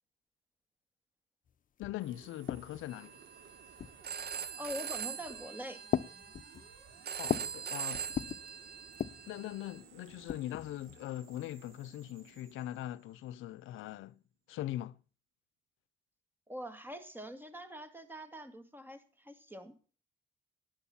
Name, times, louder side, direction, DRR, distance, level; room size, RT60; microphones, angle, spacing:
sound 1, 1.5-1.6 1.8-3.0 3.8-4.3 5.1-5.4 5.9-7.6 7.9-8.5 8.9-9.3 10.0-11.0, left 8 dB, 45° left, 0.6 m, -38 dB
voice 1, 1.8-3.2 7.2-8.1 9.3-14.2 14.5-15.0, left 14 dB, 85° left, 0.6 m, -41 dB
sound 2, 2.0-13.9, right 7 dB, 80° right, 2.9 m, -59 dB
Telephone, 2.9-9.8, right 7 dB, 55° right, 1.3 m, -42 dB
voice 2, 4.6-5.8 16.5-19.8, equal, 10° right, 2.1 m, -44 dB
11.5 x 9.2 x 7.2 m
cardioid pair, 90°, 20 cm